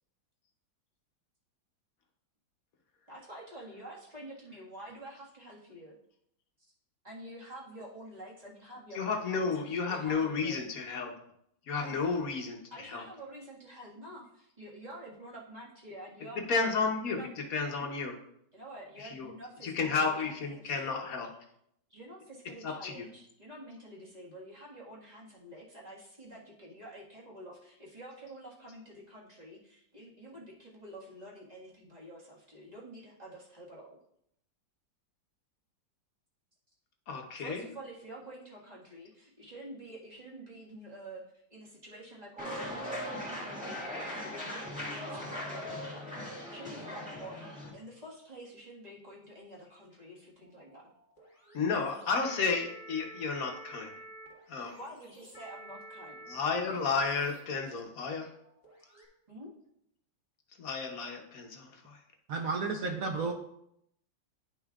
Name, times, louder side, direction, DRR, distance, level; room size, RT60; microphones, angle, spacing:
voice 1, 3.1-5.9 6.6-6.7 7.0-9.5 9.9-10.7 11.7-12.2 12.7-16.6 17.1-17.3 18.5-20.1 20.5-20.7 21.9-34.0 37.4-41.2 41.5-50.9 54.7-56.2 59.3-59.5, right 1 dB, 25° right, -5 dB, 1.6 m, -48 dB
voice 2, 8.9-11.1 11.7-13.0 16.5-18.2 19.0-19.3 19.6-21.3 22.6-23.1 37.1-37.7 51.5-53.9 54.5-54.7 56.3-58.3 60.6-62.0, left 4 dB, 55° left, 3 dB, 1.1 m, -32 dB
sound 1, 42.4-47.7, left 1 dB, 5° right, 1.5 m, -39 dB
sound 2, 50.4-59.0, right 1 dB, 20° left, 1.7 m, -51 dB
voice 3, 62.3-63.3, right 4 dB, 65° right, 3 dB, 0.9 m, -32 dB
10.5 x 5.4 x 2.4 m, 0.75 s
omnidirectional pair, 2.0 m